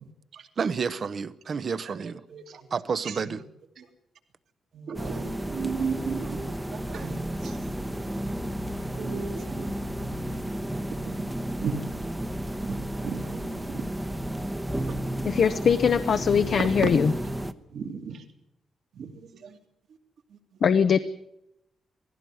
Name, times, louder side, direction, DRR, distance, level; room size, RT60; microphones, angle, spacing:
voice 1, 0.6-2.2 2.7-3.4, right 5 dB, 45° right, 0.8 m, -30 dB
voice 2, 1.8-3.4 3.8-3.9 4.7-7.7 8.9-9.8 11.0-11.3 11.6-11.9 12.6-13.9 14.9-15.2 16.6-16.9 17.7-18.2 18.9-19.6 20.3-20.6, right 6 dB, 70° right, 2.3 m, -36 dB
sound 1, 4.9-17.5, right 1 dB, 5° right, 0.9 m, -32 dB
voice 3, 15.2-17.1 20.6-21.0, left 7 dB, 55° left, 0.7 m, -21 dB
18.5 x 16.0 x 9.5 m
wide cardioid pair, 135°, 0 cm